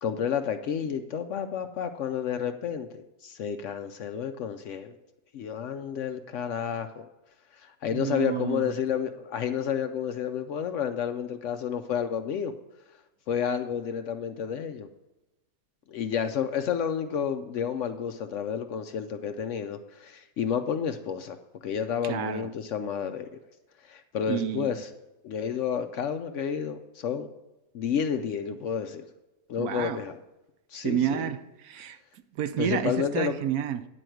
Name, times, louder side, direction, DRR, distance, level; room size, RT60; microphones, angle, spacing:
voice 1, 0.0-2.9 3.2-4.9 5.3-7.1 7.6-12.5 13.3-14.9 15.9-21.4 21.6-23.3 23.8-24.9 25.2-27.3 27.7-29.1 29.5-30.2 30.7-31.3 32.6-33.3, left 8 dB, 65° left, 0.8 m, -30 dB
voice 2, 7.9-8.7 22.0-22.5 24.3-24.7 29.6-30.0 30.8-32.0 32.3-33.9, right 10 dB, 75° right, 1.0 m, -30 dB
9.9 x 4.6 x 7.7 m
omnidirectional pair, 1.6 m